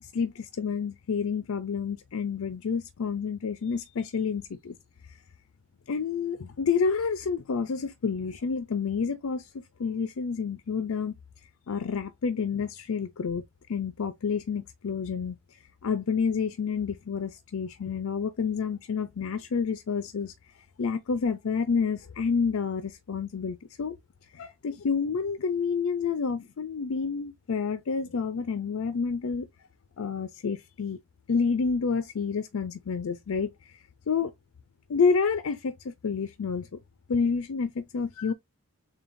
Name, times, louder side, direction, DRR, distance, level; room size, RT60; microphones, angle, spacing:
voice 1, 0.0-4.7 5.9-9.5 9.8-11.2 11.7-13.4 13.7-15.4 15.8-20.3 20.8-24.0 24.3-29.5 30.0-31.0 31.3-33.8 34.1-34.3 34.9-36.8 37.1-38.3, left 5 dB, 90° left, 0.5 m, -29 dB
6.8 x 2.3 x 2.5 m
head